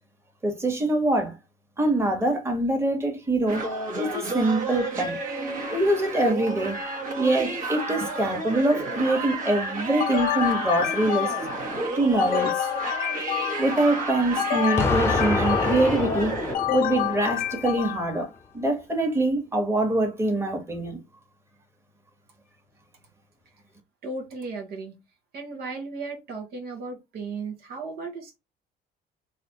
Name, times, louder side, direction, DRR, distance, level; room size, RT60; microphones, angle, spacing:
voice 1, 0.4-1.4 1.8-5.2 5.7-6.8 7.1-11.4 11.9-12.7 13.6-21.0, right 1 dB, 15° right, 1.5 m, -24 dB
sound 1, 3.5-16.6, right 2 dB, 50° right, 1.4 m, -31 dB
sound 2, 10.0-11.7 12.2-13.9 14.4-16.0 16.5-18.2, left 13 dB, 55° left, 0.4 m, -28 dB
Explosion, 14.8-17.7, left 3 dB, 15° left, 0.7 m, -27 dB
voice 2, 24.0-25.0 25.3-28.4, right 3 dB, 70° right, 1.2 m, -35 dB
4.0 x 2.8 x 2.9 m
cardioid pair, 110°, 17 cm